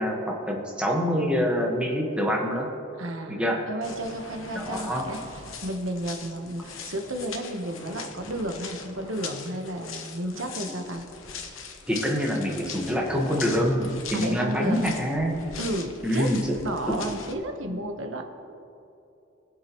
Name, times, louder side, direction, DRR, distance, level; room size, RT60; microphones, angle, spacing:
voice 1, 0.0-2.7 3.3-3.6 4.5-5.1 11.9-15.5 16.0-16.6, equal, 5° right, -1 dB, 1.4 m, -26 dB
voice 2, 3.0-11.1 14.1-15.0 15.6-16.3 16.6-18.2, right 1 dB, 75° right, 4 dB, 1.2 m, -32 dB
sound 1, 3.8-17.3, left 5 dB, 90° left, 1.1 m, -41 dB
22.0 x 7.5 x 3.1 m, 2.8 s
head